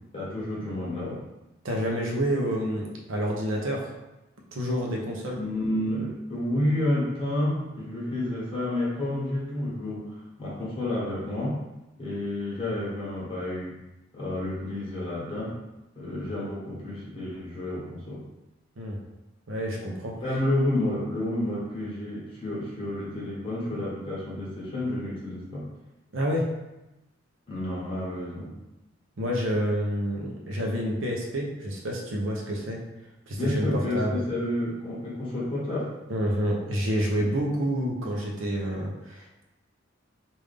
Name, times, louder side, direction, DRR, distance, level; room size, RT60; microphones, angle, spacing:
voice 1, 0.1-1.2 5.3-11.6 12.0-13.8 14.1-15.6 15.9-18.2 20.1-25.7 27.5-28.5 33.3-35.9 37.2-37.5, left 1 dB, 25° left, -8 dB, 1.4 m, -30 dB
voice 2, 1.6-3.9 4.5-5.4 18.8-19.0 19.5-20.1 26.1-26.5 29.2-32.8 33.3-34.2 36.1-39.4, equal, 75° right, -1 dB, 0.7 m, -28 dB
3.3 x 2.6 x 3.4 m, 0.98 s
head